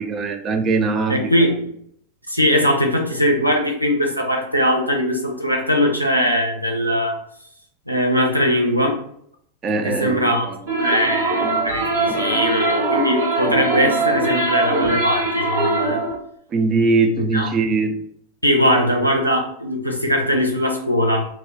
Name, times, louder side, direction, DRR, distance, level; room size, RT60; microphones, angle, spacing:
voice 1, 0.0-1.3 9.6-10.6 16.5-18.0, right 3 dB, 25° right, 6 dB, 0.3 m, -21 dB
voice 2, 1.1-1.7 2.3-7.2 7.9-9.0 9.8-10.5 10.8-16.0 17.2-17.5 18.4-21.3, equal, 90° left, 1 dB, 0.5 m, -20 dB
sound 1, 10.7-16.1, right 2 dB, 60° right, 0.9 m, -21 dB
2.3 x 2.1 x 3.5 m, 0.68 s
figure-of-eight pair, 90°, 0 cm